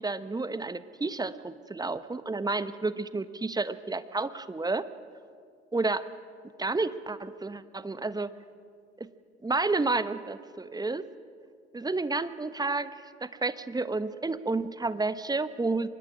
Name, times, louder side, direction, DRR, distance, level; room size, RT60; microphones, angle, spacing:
voice 1, 0.0-4.8 5.7-6.1 6.6-8.3 9.0-9.1 9.4-11.1 11.7-15.9, right 3 dB, 10° right, 14 dB, 1.0 m, -30 dB
24.5 x 20.0 x 6.0 m, 2.2 s
figure-of-eight pair, 55°, 33 cm